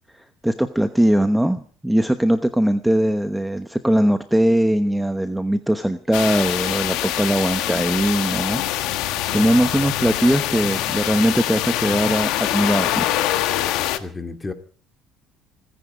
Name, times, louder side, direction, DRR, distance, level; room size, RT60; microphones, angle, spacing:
voice 1, 0.1-8.6 9.0-13.1, right 1 dB, 5° right, 9 dB, 1.0 m, -20 dB
sound 1, 6.1-14.0, left 13 dB, 80° left, 1.4 m, -24 dB
voice 2, 9.1-9.5 14.0-14.5, left 3 dB, 20° left, 7 dB, 2.6 m, -33 dB
27.0 x 10.5 x 4.9 m, 0.44 s
supercardioid pair, 100°, 0 cm